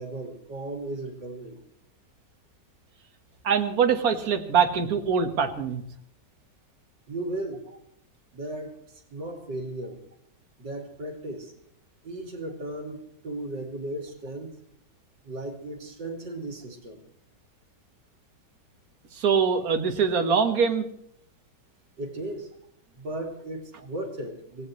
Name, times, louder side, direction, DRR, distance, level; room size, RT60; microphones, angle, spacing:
voice 1, 0.0-1.6 7.1-7.7 8.3-10.0 10.6-11.5 12.0-14.5 15.2-17.0 22.0-22.5 22.9-24.7, right 1 dB, 75° right, 3 dB, 3.1 m, -36 dB
voice 2, 3.4-5.8 19.1-20.9, right 6 dB, 55° right, 6 dB, 1.8 m, -23 dB
25.0 x 18.0 x 3.2 m, 0.70 s
omnidirectional pair, 1.9 m